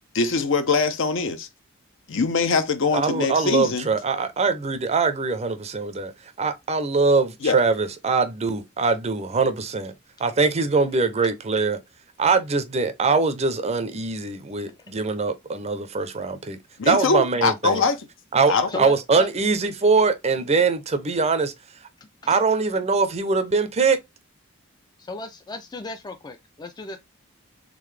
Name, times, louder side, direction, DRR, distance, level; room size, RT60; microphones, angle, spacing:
voice 1, 0.1-1.5 2.1-3.9 7.4-7.6 16.8-18.0 18.5-18.7, left 4 dB, 65° left, 0.7 m, -22 dB
voice 2, 2.9-6.1 6.4-9.9 10.2-11.8 12.2-16.6 16.9-17.8 18.3-21.5 22.3-24.0, right 4 dB, 30° right, 0.6 m, -22 dB
voice 3, 18.7-19.3 19.8-19.9 22.0-22.4 25.0-27.0, left 2 dB, 20° left, 0.4 m, -36 dB
3.9 x 3.4 x 3.2 m
head